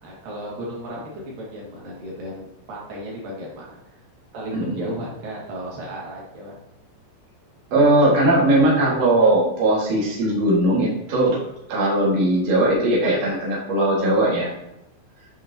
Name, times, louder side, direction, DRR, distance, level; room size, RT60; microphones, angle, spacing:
voice 1, 0.0-4.0 4.3-6.5 7.7-7.9, right 1 dB, 55° right, -4 dB, 2.8 m, -34 dB
voice 2, 4.5-4.9 7.7-11.4 11.7-14.5, right 1 dB, 80° right, -5 dB, 1.4 m, -19 dB
9.2 x 5.4 x 2.7 m, 0.86 s
omnidirectional pair, 5.9 m